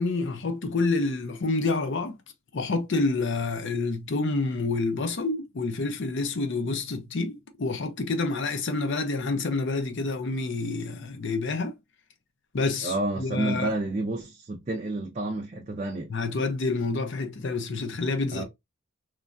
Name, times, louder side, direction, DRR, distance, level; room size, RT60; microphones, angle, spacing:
voice 1, 0.0-2.2 2.5-11.7 12.5-13.7 16.1-18.4, left 3 dB, 55° left, 0.5 m, -28 dB
voice 2, 12.8-16.1 18.3-18.4, right 2 dB, 30° right, 0.4 m, -30 dB
3.1 x 2.3 x 2.4 m
head